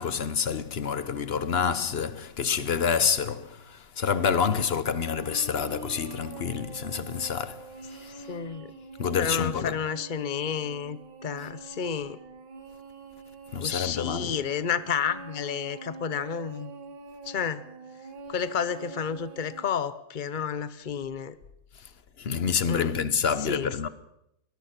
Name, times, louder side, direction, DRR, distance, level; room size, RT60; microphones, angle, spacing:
voice 1, 0.0-8.3 9.0-9.8 13.5-14.3 22.2-23.9, left 6 dB, 45° left, 0.8 m, -28 dB
sound 1, 4.9-19.6, right 3 dB, 80° right, 2.6 m, -45 dB
voice 2, 8.3-8.7 9.2-12.2 13.6-16.7 17.2-17.7 18.3-21.4 22.7-22.9 23.4-23.7, left 7 dB, 90° left, 0.4 m, -31 dB
22.5 x 20.0 x 5.9 m
omnidirectional pair, 2.2 m